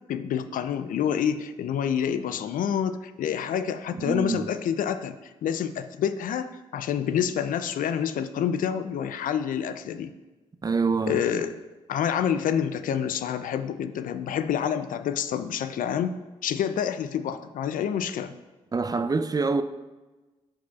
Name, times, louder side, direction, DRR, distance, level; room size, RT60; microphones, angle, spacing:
voice 1, 0.1-5.2 5.4-10.1 11.1-11.5 11.9-18.3, left 8 dB, 65° left, 0.4 m, -28 dB
voice 2, 4.0-4.4 10.6-11.5 18.7-19.6, right 4 dB, 25° right, 0.4 m, -26 dB
11.5 x 4.8 x 2.4 m
supercardioid pair, 45°, 15 cm